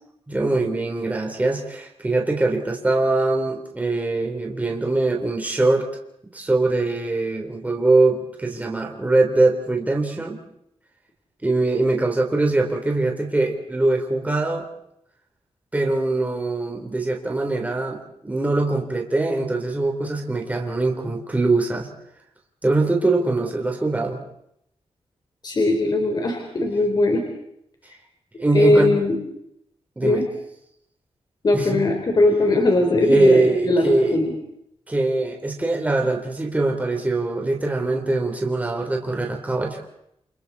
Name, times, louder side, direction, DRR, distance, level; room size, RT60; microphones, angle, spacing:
voice 1, 0.3-5.9 6.3-10.4 11.4-14.7 15.7-21.9 22.6-24.2 28.4-28.9 30.0-30.2 31.5-31.8 33.0-34.2 34.9-39.8, right 2 dB, 15° right, 1 dB, 3.7 m, -22 dB
voice 2, 25.4-27.2 28.5-29.2 30.0-30.2 31.4-34.3, left 2 dB, 40° left, 3 dB, 4.1 m, -20 dB
29.0 x 28.5 x 4.2 m, 0.75 s
wide cardioid pair, 140°, 11 cm